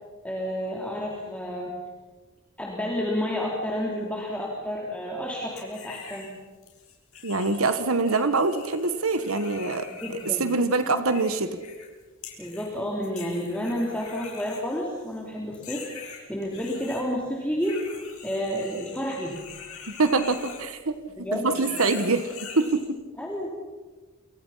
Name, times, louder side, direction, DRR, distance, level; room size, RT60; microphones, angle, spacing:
voice 1, 0.2-1.7 2.6-6.3 9.9-10.5 12.4-17.8 18.2-19.3 21.2-21.8 23.2-23.5, equal, 5° left, -3 dB, 3.2 m, -30 dB
sound 1, 5.6-6.3 6.6-11.9 12.2-12.7 13.0-15.2 15.5-17.0 17.6-21.0 21.3-22.9, left 6 dB, 85° left, 6.4 m, -43 dB
voice 2, 7.2-9.9 10.4-11.6 20.0-20.9 21.3-22.3 22.5-23.0, right 3 dB, 80° right, 10 dB, 1.6 m, -24 dB
29.0 x 24.0 x 5.8 m, 1.3 s
head